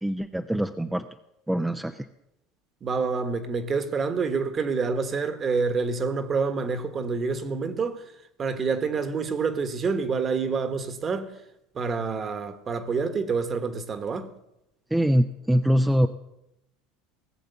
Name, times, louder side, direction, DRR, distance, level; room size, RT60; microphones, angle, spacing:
voice 1, 0.0-1.1 1.5-2.1 14.9-16.1, equal, 5° right, 0.5 m, -23 dB
voice 2, 2.8-8.0 8.4-11.3 11.7-14.3, right 4 dB, 30° right, 1.3 m, -27 dB
18.5 x 7.4 x 6.9 m
supercardioid pair, 105°, 0 cm